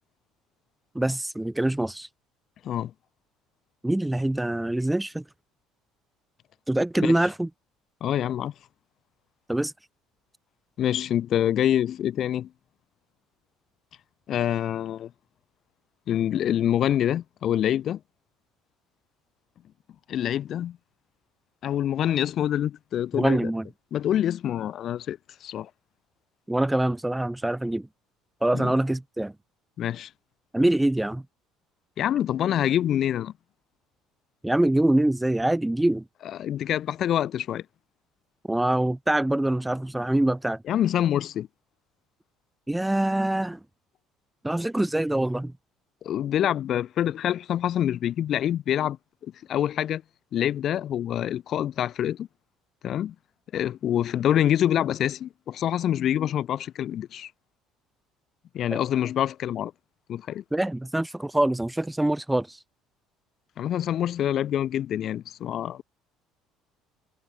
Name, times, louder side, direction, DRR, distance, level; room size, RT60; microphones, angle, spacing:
voice 1, 0.9-2.1 3.8-5.2 6.7-7.5 9.5-9.7 23.1-23.7 26.5-27.9 28.4-29.3 30.5-31.2 34.4-36.0 38.5-40.6 42.7-43.6 44.4-45.5 58.7-58.8 60.5-62.6, right 1 dB, 5° right, 0.6 m, -24 dB
voice 2, 8.0-8.5 10.8-12.5 14.3-15.1 16.1-18.0 20.1-20.8 21.6-23.5 23.9-25.7 28.6-28.7 29.8-30.1 32.0-33.3 36.4-37.6 40.7-41.5 46.0-49.0 49.5-50.0 50.3-52.3 52.8-53.1 53.5-57.3 58.5-59.7 60.1-60.4 63.6-65.8, left 11 dB, 50° left, 1.6 m, -26 dB
cardioid pair, 120°, 0 cm